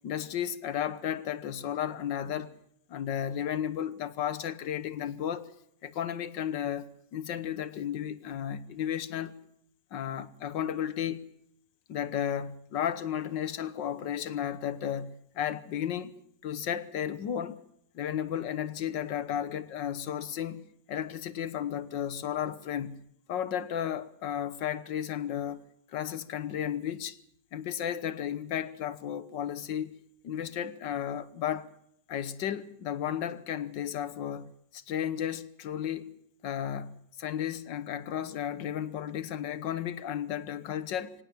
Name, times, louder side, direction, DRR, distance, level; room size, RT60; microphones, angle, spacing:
voice 1, 0.0-2.5 2.9-5.5 5.8-9.3 9.9-11.2 11.9-16.1 16.4-17.6 18.0-20.6 20.9-23.0 23.3-25.6 25.9-27.2 27.5-30.0 30.2-31.7 32.1-36.1 36.4-41.1, left 9 dB, 80° left, 1.8 m, -33 dB
25.0 x 17.5 x 7.3 m
omnidirectional pair, 2.0 m